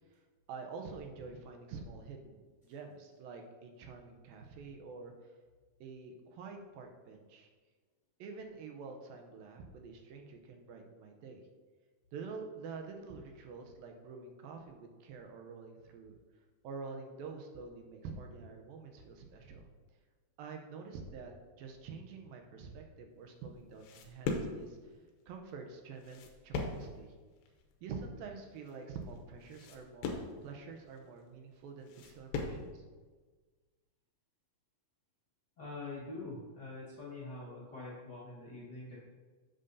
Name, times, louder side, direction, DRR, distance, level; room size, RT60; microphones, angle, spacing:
voice 1, 0.5-5.3 5.8-7.5 8.2-11.4 12.1-16.2 16.6-19.7 20.4-21.3 21.6-25.0 25.3-27.1 27.8-32.8, right 4 dB, 80° right, 3 dB, 2.5 m, -47 dB
sound 1, 23.2-32.7, left 4 dB, 85° left, 2.8 m, -41 dB
voice 2, 35.6-39.0, left 2 dB, 40° left, -8 dB, 1.6 m, -45 dB
10.0 x 7.7 x 2.7 m, 1.4 s
omnidirectional pair, 4.2 m